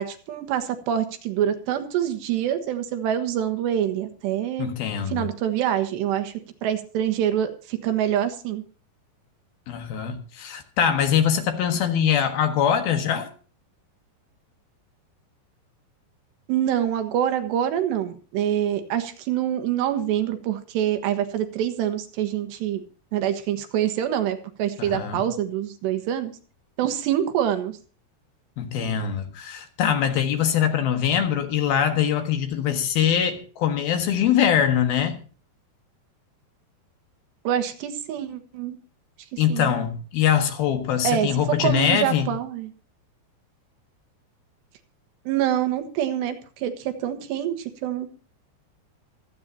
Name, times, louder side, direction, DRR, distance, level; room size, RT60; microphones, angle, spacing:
voice 1, 0.0-4.7 5.1-6.3 6.6-8.6 16.5-22.8 23.1-26.3 26.8-27.8 37.5-38.8 39.3-39.8 41.0-42.7 45.3-48.1, right 10 dB, 80° right, 9 dB, 3.5 m, -25 dB
voice 2, 4.6-5.3 9.7-13.3 24.8-25.2 28.6-35.2 39.4-42.3, left 9 dB, 65° left, 6 dB, 3.2 m, -23 dB
25.5 x 8.9 x 2.8 m, 0.39 s
omnidirectional pair, 4.9 m